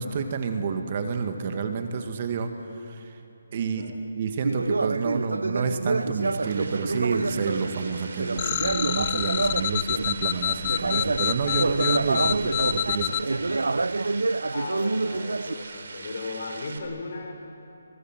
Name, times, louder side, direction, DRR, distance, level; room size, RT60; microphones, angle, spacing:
voice 1, 0.0-2.5 2.8-3.2 3.5-13.1, right 5 dB, 40° right, 6 dB, 1.9 m, -29 dB
Conversation, 4.4-10.2 10.6-15.5, right 3 dB, 85° right, 0.5 m, -28 dB
sound 1, 5.9-16.8, right 3 dB, 65° right, 3.5 m, -42 dB
sound 2, 8.4-13.2, left 11 dB, 30° left, 0.7 m, -27 dB
voice 2, 12.9-13.8 14.5-17.3, left 3 dB, 60° left, 4 dB, 4.9 m, -37 dB
28.5 x 22.5 x 7.5 m, 2.8 s
hypercardioid pair, 160°, 0 cm